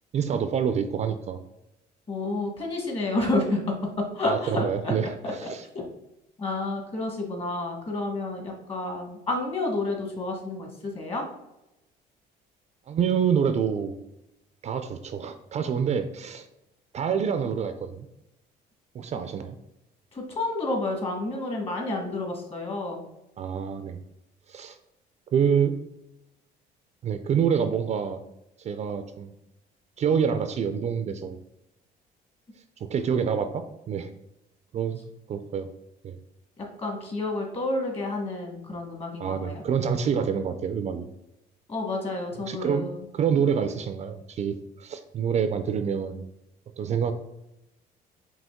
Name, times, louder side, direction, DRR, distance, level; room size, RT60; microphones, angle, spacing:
voice 1, 0.1-1.4 4.2-5.1 5.4-5.6 12.9-13.9 14.6-16.5 16.9-18.1 18.9-19.6 23.4-24.0 24.5-24.8 25.3-25.8 27.0-28.2 28.6-29.3 30.0-31.4 32.9-34.1 34.7-35.0 35.3-35.7 36.0-36.2 39.2-41.1 42.5-42.9 43.1-46.2 46.8-47.1, right 7 dB, 40° right, 9 dB, 0.4 m, -27 dB
voice 2, 2.1-3.7 4.1-4.9 5.2-5.5 6.4-11.3 20.1-23.1 36.6-39.6 41.7-43.0, left 2 dB, 35° left, 1 dB, 1.4 m, -30 dB
5.1 x 2.9 x 3.6 m, 0.89 s
cardioid pair, 110°, 17 cm